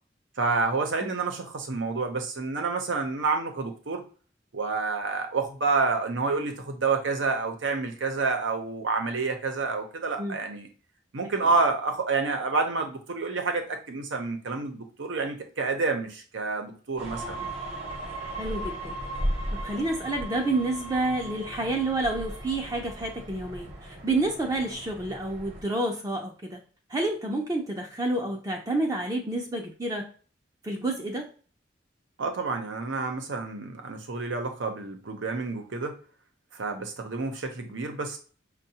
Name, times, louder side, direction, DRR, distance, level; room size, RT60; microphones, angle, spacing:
voice 1, 0.4-4.0 4.5-10.7 11.1-17.5 32.2-36.0 36.5-38.2, right 4 dB, 85° right, 5 dB, 0.7 m, -29 dB
sound 1, 17.0-25.6, right 1 dB, 35° right, 0.9 m, -36 dB
voice 2, 18.4-19.0 19.6-26.6 26.9-30.1 30.6-31.3, right 2 dB, 20° right, 1 dB, 0.4 m, -29 dB
5.4 x 2.2 x 2.8 m, 0.40 s
head